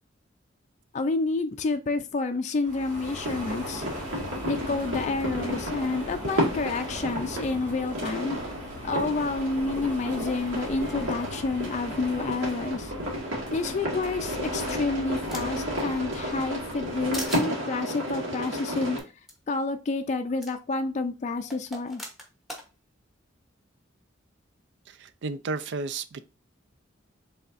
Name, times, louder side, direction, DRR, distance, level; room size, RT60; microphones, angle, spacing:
voice 1, 0.9-3.8 4.5-8.4 8.8-12.9 13.5-19.0 19.5-22.0, left 3 dB, 35° left, 0.4 m, -29 dB
sound 1, 2.6-17.3, equal, 40° right, 1.9 m, -40 dB
sound 2, 3.2-19.0, equal, 90° right, 2.1 m, -33 dB
sound 3, 15.0-15.7 16.1-16.9 17.1-17.5 18.9-19.0 19.3-19.4 20.4-20.5 21.5-22.6, equal, ahead, 1.0 m, -39 dB
voice 2, 24.9-26.3, right 3 dB, 65° right, 0.4 m, -33 dB
5.4 x 3.5 x 2.5 m
head